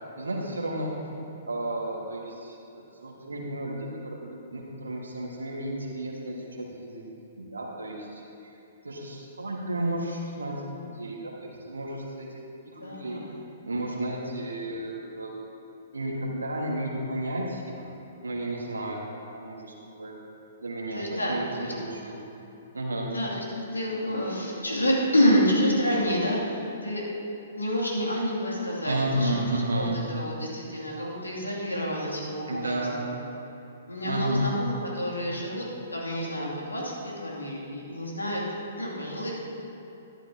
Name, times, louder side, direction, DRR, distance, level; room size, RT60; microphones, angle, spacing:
voice 1, 0.1-0.9 1.4-7.0 7.3-8.5 8.8-10.5 10.8-12.3 12.7-13.2 13.6-15.3 15.9-17.9 18.2-19.1 19.3-20.1 20.6-22.2 22.7-23.1 28.8-30.0 32.5-33.0 34.0-34.5, right 1 dB, 75° right, -2 dB, 1.6 m, -32 dB
voice 2, 12.8-13.4 20.9-21.7 23.1-27.0 27.6-32.7 33.0-33.1 33.9-35.6 35.9-38.4 38.8-39.3, equal, 80° left, -4 dB, 2.5 m, -28 dB
12.0 x 11.0 x 2.8 m, 2.9 s
figure-of-eight pair, 115°, 0 cm